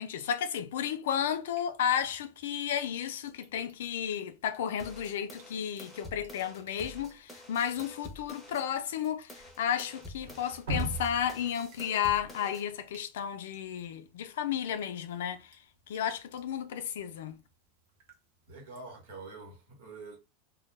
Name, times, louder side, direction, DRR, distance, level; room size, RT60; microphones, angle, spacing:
voice 1, 0.0-15.6 15.9-17.4, left 9 dB, 80° left, 0.4 m, -33 dB
Drip, 1.1-19.3, right 1 dB, 65° right, 0.7 m, -47 dB
sound 1, 4.8-8.7 9.0-12.7, left 1 dB, ahead, 0.6 m, -48 dB
voice 2, 18.5-20.2, right 3 dB, 90° right, 1.1 m, -46 dB
2.2 x 2.1 x 3.1 m
supercardioid pair, 170°, 0 cm